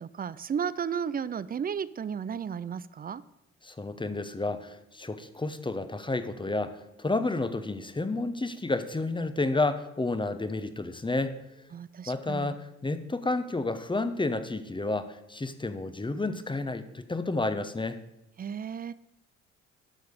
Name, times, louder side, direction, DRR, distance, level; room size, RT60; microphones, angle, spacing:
voice 1, 0.0-3.2 11.7-12.6 18.4-18.9, right 7 dB, 25° right, 18 dB, 0.4 m, -34 dB
voice 2, 3.6-11.3 12.1-18.0, left 2 dB, 15° left, 11 dB, 0.9 m, -31 dB
11.5 x 6.5 x 5.2 m, 0.95 s
hypercardioid pair, 50°, 36 cm